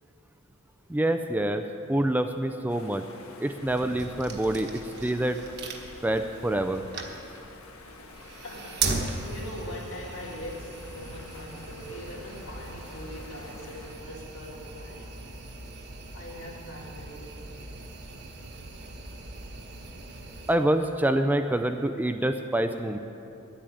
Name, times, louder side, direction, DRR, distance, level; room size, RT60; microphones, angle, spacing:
voice 1, 0.9-3.0 3.4-5.4 6.0-6.8 20.5-23.0, right 1 dB, 10° right, 7 dB, 0.4 m, -26 dB
sound 1, 2.7-14.0, left 3 dB, 80° left, 1.5 m, -49 dB
sound 2, 3.6-20.6, right 4 dB, 50° right, 1.3 m, -39 dB
voice 2, 8.2-15.1 16.1-17.6, equal, 65° left, -3 dB, 2.9 m, -42 dB
11.0 x 8.7 x 9.1 m, 2.7 s
head